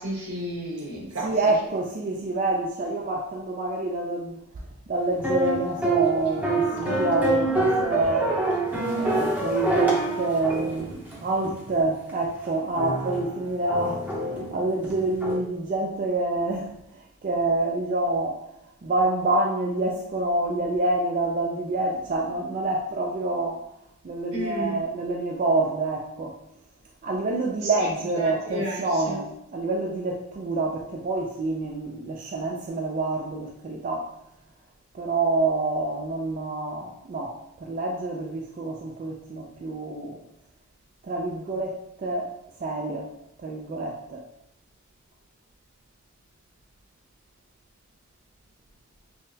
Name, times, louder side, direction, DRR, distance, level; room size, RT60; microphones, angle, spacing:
voice 1, 0.0-1.3 24.3-24.8 27.6-27.7 28.2-29.2, equal, 75° right, -4 dB, 1.4 m, -32 dB
voice 2, 1.2-4.4 4.9-8.4 8.9-23.7 24.0-26.4 27.0-34.1 34.9-40.2 41.0-42.3 42.6-43.1 43.4-44.2, right 2 dB, 40° right, -1 dB, 0.4 m, -27 dB
sound 1, 5.2-11.6 12.1-12.2 12.8-15.4, right 2 dB, 10° right, 0.8 m, -26 dB
5.6 x 2.1 x 2.7 m, 0.81 s
head